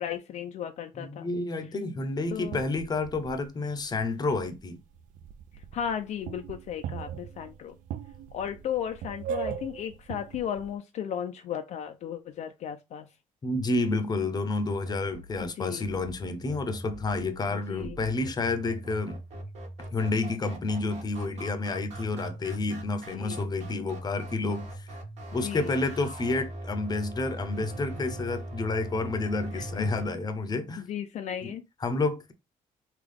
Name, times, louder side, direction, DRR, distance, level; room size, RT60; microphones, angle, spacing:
voice 1, 0.0-1.3 2.3-2.6 5.7-7.8 8.3-13.1 15.4-15.9 17.5-18.0 23.1-23.4 25.4-25.7 29.5-29.7 30.8-31.6, left 9 dB, 60° left, 0.4 m, -35 dB
voice 2, 1.0-4.8 13.4-19.2 19.9-24.9 25.3-30.8 31.4-31.5 31.8-32.3, left 3 dB, 30° left, 0.7 m, -30 dB
sound 1, 2.3-4.6 4.9-10.7, right 8 dB, 75° right, 0.4 m, -40 dB
sound 2, 14.7-30.1, right 1 dB, 55° right, 1.4 m, -41 dB
3.8 x 2.3 x 3.4 m
cardioid pair, 100°, 14 cm